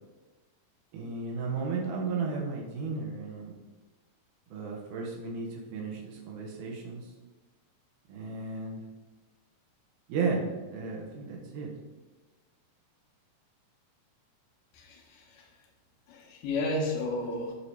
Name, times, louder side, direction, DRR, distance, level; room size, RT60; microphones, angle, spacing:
voice 1, 0.9-3.6 4.5-7.0 8.1-8.8 10.1-10.4 10.7-11.7, right 4 dB, 75° right, -1 dB, 2.4 m, -34 dB
voice 2, 14.7-15.5 16.1-17.5, left 2 dB, 80° left, 0 dB, 2.6 m, -32 dB
8.1 x 2.8 x 4.6 m, 1.2 s
omnidirectional pair, 3.8 m